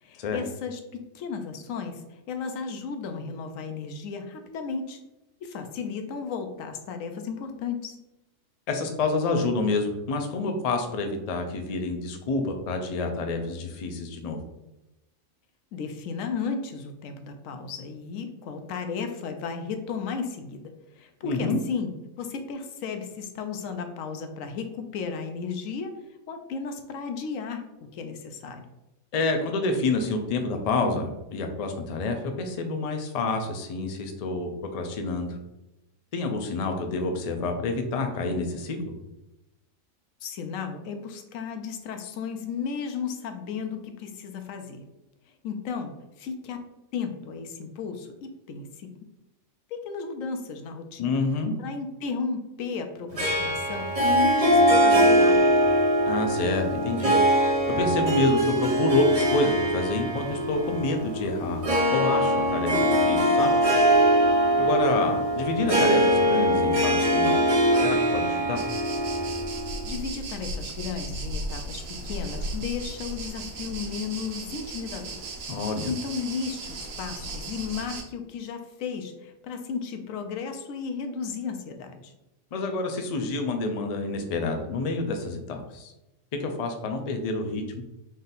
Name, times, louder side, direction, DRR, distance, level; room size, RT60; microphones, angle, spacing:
voice 1, 0.0-5.0 5.4-8.0 15.7-26.0 26.3-28.7 40.2-44.8 45.4-46.6 46.9-48.9 49.7-51.2 51.6-55.7 69.9-75.3 75.8-82.1, left 5 dB, 80° left, 7 dB, 1.0 m, -34 dB
voice 2, 8.7-14.4 21.2-21.6 29.1-35.4 36.1-38.9 51.0-51.5 56.0-57.2 57.5-61.6 61.9-63.5 64.6-68.6 75.5-75.9 82.5-85.9 86.4-87.8, left 3 dB, 65° left, 4 dB, 0.3 m, -28 dB
Harp, 53.2-69.9, equal, 40° right, 0.6 m, -22 dB
sound 1, 68.6-78.0, right 2 dB, 85° right, 1.2 m, -36 dB
3.7 x 2.6 x 4.0 m, 0.95 s
omnidirectional pair, 1.4 m